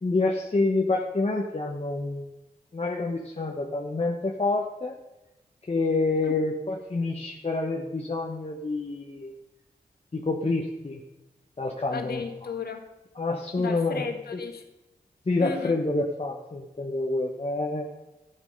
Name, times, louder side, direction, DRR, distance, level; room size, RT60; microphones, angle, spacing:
voice 1, 0.0-2.3 2.7-4.9 5.7-9.3 10.1-11.0 11.6-12.2 13.2-14.0 14.3-14.4 15.3-17.9, left 3 dB, 40° left, 0 dB, 1.3 m, -27 dB
voice 2, 11.9-12.8 13.6-14.6 15.4-15.7, left 5 dB, 75° left, 4 dB, 1.7 m, -34 dB
13.5 x 9.0 x 5.4 m, 1.0 s
cardioid pair, 50°, 16 cm